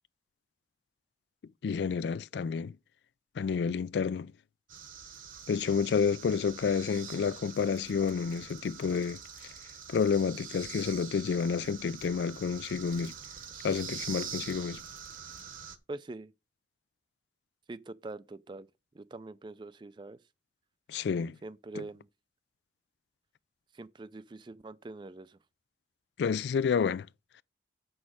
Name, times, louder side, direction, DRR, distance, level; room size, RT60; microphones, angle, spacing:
voice 1, 1.6-2.7 3.4-4.3 5.5-9.2 9.9-13.1 13.6-14.8 20.9-21.4 26.2-27.1, left 6 dB, 75° left, 0.3 m, -29 dB
sound 1, 4.7-15.8, right 7 dB, 50° right, 1.0 m, -45 dB
voice 2, 15.9-16.3 17.7-18.7 18.9-20.2 21.4-22.1 23.7-25.4, right 2 dB, 25° right, 0.4 m, -44 dB
7.1 x 6.3 x 4.8 m
head